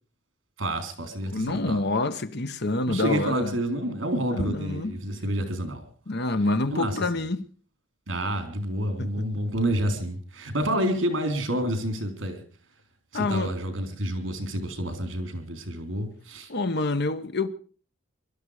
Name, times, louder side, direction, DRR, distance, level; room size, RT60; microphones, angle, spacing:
voice 1, 0.6-1.8 2.9-5.9 6.7-7.0 8.1-12.4 13.1-16.5, right 1 dB, 75° right, 3.7 m, -29 dB
voice 2, 1.3-3.6 4.3-4.9 6.1-7.4 9.0-9.1 13.1-13.5 16.5-17.5, left 2 dB, 60° left, 1.2 m, -27 dB
22.0 x 12.5 x 5.0 m
head